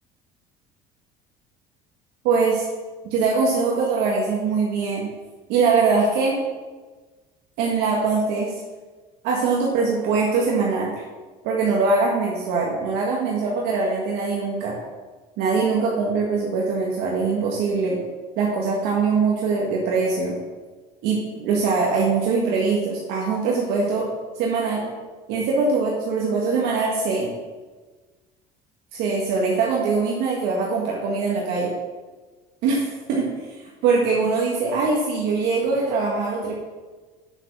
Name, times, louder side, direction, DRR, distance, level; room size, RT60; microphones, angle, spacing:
voice 1, 2.2-2.7 3.0-5.1 5.5-6.4 7.6-8.5 9.2-10.9 11.4-14.8 15.4-18.0 18.4-20.4 21.0-24.1 24.3-24.9 25.3-27.3 28.9-31.7 32.6-33.5 33.8-36.5, right 4 dB, 75° right, -3 dB, 1.8 m, -22 dB
8.0 x 6.2 x 6.2 m, 1.3 s
supercardioid pair, 105°, 17 cm